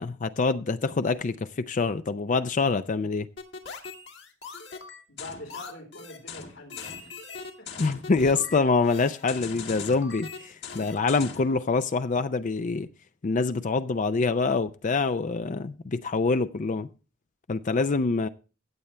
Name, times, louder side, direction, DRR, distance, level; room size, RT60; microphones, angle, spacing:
voice 1, 0.0-3.3 7.8-12.9 13.2-16.9 17.5-18.3, left 4 dB, 40° left, 0.5 m, -25 dB
sound 1, 3.4-11.5, left 5 dB, 65° left, 2.0 m, -40 dB
voice 2, 5.1-6.8 7.6-7.7, left 1 dB, 85° left, 4.1 m, -44 dB
16.0 x 8.1 x 3.2 m
head